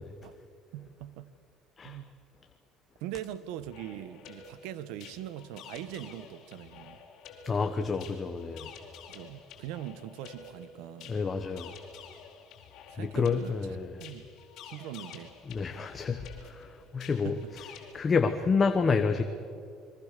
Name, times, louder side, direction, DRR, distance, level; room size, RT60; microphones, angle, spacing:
voice 1, 0.7-1.3 1.8-2.1 3.0-7.0 9.1-11.2 12.9-13.6 14.0-14.3 14.6-15.3 17.2-17.5, right 12 dB, 80° right, 1.2 m, -41 dB
sound 1, 3.6-18.0, left 7 dB, 55° left, 4.5 m, -50 dB
voice 2, 7.4-8.7 11.1-11.7 13.0-13.9 15.5-17.7 17.9-19.2, left 5 dB, 20° left, 1.2 m, -29 dB
29.5 x 23.0 x 6.8 m
cardioid pair, 165°, 0 cm